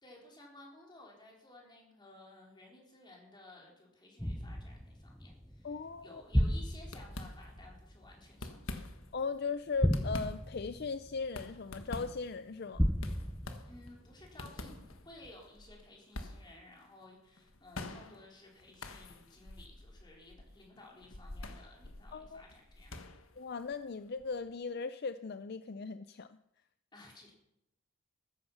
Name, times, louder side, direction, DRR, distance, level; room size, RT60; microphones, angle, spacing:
voice 1, 0.0-5.8 6.0-8.9 13.7-23.1 26.9-27.3, left 2 dB, 20° left, -1 dB, 4.2 m, -56 dB
sound 1, 4.2-9.2 9.7-12.1 12.7-14.8 15.2-15.3, equal, 5° left, 0.7 m, -35 dB
voice 2, 5.6-6.2 9.1-12.9 22.1-22.4 23.4-26.4, left 4 dB, 50° left, 12 dB, 0.5 m, -38 dB
sound 2, 5.9-6.2 6.5-6.6 6.9-7.8 8.2-9.2 9.6-24.6, left 2 dB, 85° left, 1.5 m, -47 dB
14.5 x 13.5 x 5.7 m, 0.83 s
head